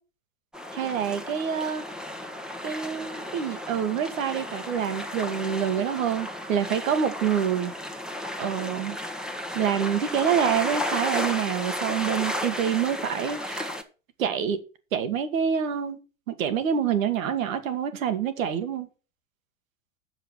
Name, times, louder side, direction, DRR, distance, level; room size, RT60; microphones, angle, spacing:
sound 1, 0.5-13.8, left 1 dB, ahead, 1.3 m, -33 dB
voice 1, 0.7-1.8 2.6-7.7 8.4-9.0 9.5-13.7 14.2-14.6 14.9-16.0 16.4-18.9, right 8 dB, 70° right, 1.8 m, -26 dB
7.6 x 5.9 x 7.1 m
hypercardioid pair, 95°, 41 cm